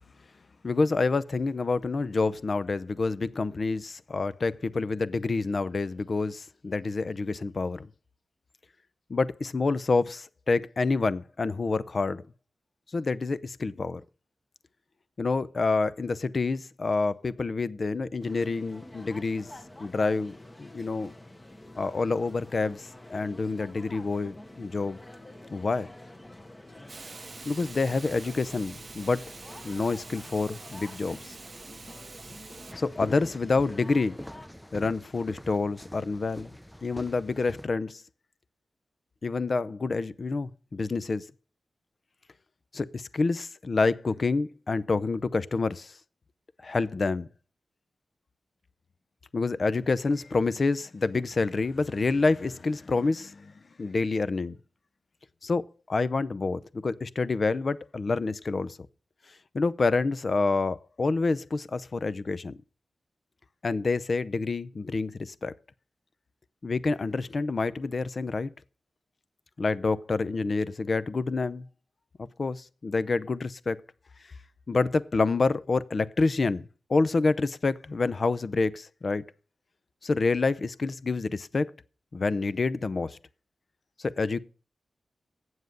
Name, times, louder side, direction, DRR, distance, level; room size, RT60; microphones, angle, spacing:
voice 1, 0.6-7.9 9.1-12.2 12.9-14.0 15.2-19.5 19.8-21.1 21.8-25.0 25.5-25.9 27.4-29.3 29.6-31.4 32.8-34.2 34.7-36.5 36.8-38.0 39.2-41.3 42.7-46.0 46.6-47.3 49.3-53.5 53.8-54.6 55.4-58.8 59.5-62.6 63.6-65.5 66.6-68.5 69.6-71.7 72.2-73.8 74.7-79.2 80.0-81.7 82.1-83.2 84.0-84.4, left 3 dB, 55° left, 0.6 m, -28 dB
sound 1, 18.2-34.5, left 1 dB, 25° left, 1.4 m, -48 dB
Hiss, 26.9-32.7, right 4 dB, 55° right, 0.5 m, -46 dB
sound 2, 32.7-37.6, equal, 5° left, 0.5 m, -45 dB
8.0 x 7.4 x 6.6 m
cardioid pair, 45°, 0 cm